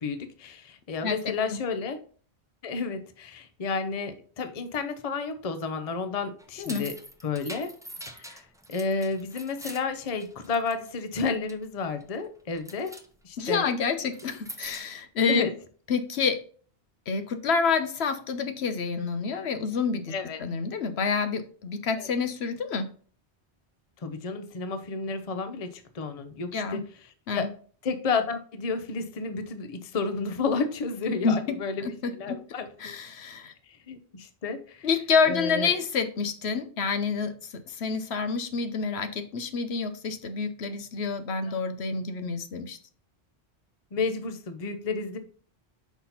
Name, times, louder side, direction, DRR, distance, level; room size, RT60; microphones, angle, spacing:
voice 1, 0.0-2.0 2.6-7.0 7.2-7.7 8.1-12.9 13.2-13.7 15.3-15.5 20.1-20.4 22.0-22.1 24.0-26.8 27.3-27.5 27.8-31.9 32.2-32.7 33.9-34.9 35.2-35.7 41.5-41.6 43.9-45.2, left 4 dB, 40° left, 9 dB, 0.8 m, -31 dB
sound 1, 6.4-10.9 11.1-11.6 12.0-12.3 12.5-13.1 14.0-15.0, right 1 dB, 5° right, 0.6 m, -44 dB
voice 2, 13.4-15.5 15.9-16.4 17.1-20.1 20.4-22.9 26.5-26.8 27.3-27.5 31.2-31.4 31.8-32.3 32.8-33.5 34.8-37.3 37.7-42.8, left 5 dB, 70° left, 8 dB, 1.1 m, -28 dB
5.9 x 4.2 x 5.6 m, 0.43 s
omnidirectional pair, 1.1 m